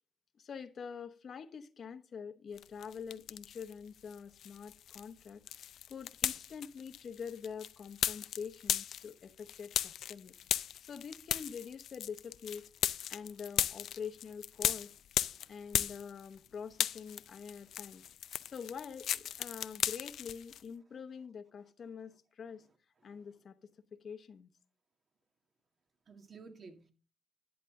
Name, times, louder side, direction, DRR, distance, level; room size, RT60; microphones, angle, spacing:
voice 1, 0.4-5.4 5.9-10.4 10.8-12.7 13.1-14.9 15.5-18.1 18.5-22.6 23.0-23.6 23.9-24.5, left 6 dB, 50° left, 1.0 m, -45 dB
sound 1, 2.6-3.7 4.1-16.5 16.7-20.6, left 10 dB, 70° left, 0.4 m, -36 dB
voice 2, 15.3-15.9 18.0-18.5 23.0-23.3 26.1-26.9, right 4 dB, 45° right, 2.0 m, -56 dB
11.0 x 8.4 x 3.7 m
cardioid pair, 90°, 0 cm